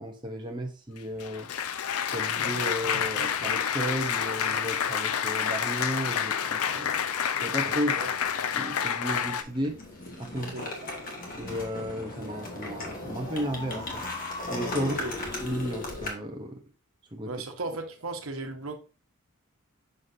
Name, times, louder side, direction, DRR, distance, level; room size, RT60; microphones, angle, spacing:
voice 1, 0.0-1.5 2.1-7.0 7.4-8.0 8.5-9.8 10.2-10.5 10.8-10.9 11.3-14.0 14.5-15.0 15.4-16.6 17.1-17.3, equal, 20° right, 0.8 m, -33 dB
Applause, 1.0-9.4, left 8 dB, 90° left, 0.5 m, -29 dB
sound 1, 8.3-8.7 9.1-16.1, left 2 dB, 40° left, 1.5 m, -37 dB
voice 2, 10.3-10.7 14.7-15.1 17.3-18.8, right 2 dB, 75° right, 1.1 m, -36 dB
6.5 x 5.7 x 2.6 m
head